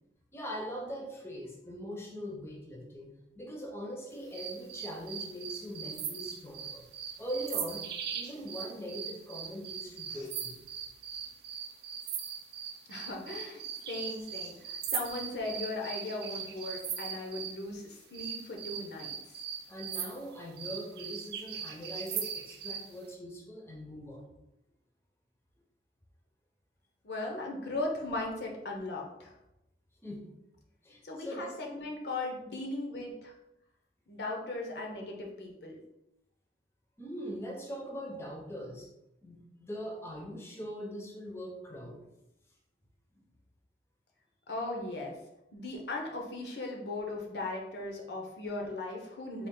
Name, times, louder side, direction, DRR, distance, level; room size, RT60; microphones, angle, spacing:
voice 1, 0.3-6.9 7.2-7.9 8.1-10.6 19.7-24.3 30.0-30.3 30.8-31.8 37.0-38.9 39.2-42.0 43.1-43.2, equal, 15° left, -1 dB, 0.6 m, -41 dB
sound 1, 4.3-17.6 18.1-22.9, right 8 dB, 65° right, 0.4 m, -39 dB
voice 2, 12.9-19.2 27.0-29.3 31.0-33.3 34.1-35.8 44.5-45.2 45.5-49.5, left 2 dB, 70° left, 0 dB, 0.7 m, -38 dB
3.9 x 2.5 x 3.6 m, 0.90 s
head